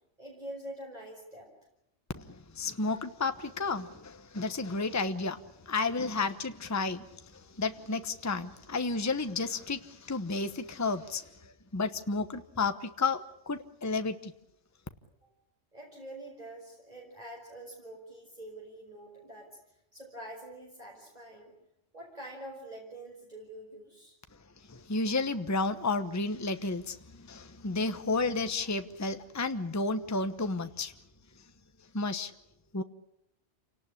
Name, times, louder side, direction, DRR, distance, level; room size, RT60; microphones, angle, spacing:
voice 1, 0.2-1.5 15.2-15.3 15.7-19.5 19.9-21.5 21.9-24.2, right 1 dB, 35° right, -2 dB, 5.5 m, -45 dB
voice 2, 2.1-14.3 24.7-30.9 31.9-32.3 32.7-32.8, left 3 dB, 15° left, 8 dB, 1.0 m, -32 dB
28.5 x 18.5 x 9.9 m, 0.84 s
omnidirectional pair, 1.3 m